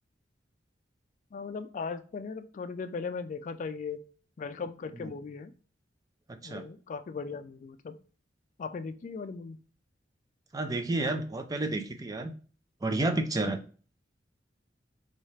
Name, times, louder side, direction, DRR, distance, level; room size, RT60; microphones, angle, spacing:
voice 1, 1.3-4.0 4.4-5.5 6.4-8.0 8.6-9.6, left 5 dB, 45° left, 9 dB, 0.3 m, -38 dB
voice 2, 10.5-12.3 12.8-13.6, right 2 dB, 20° right, 6 dB, 0.4 m, -30 dB
4.1 x 2.4 x 3.1 m, 0.39 s
head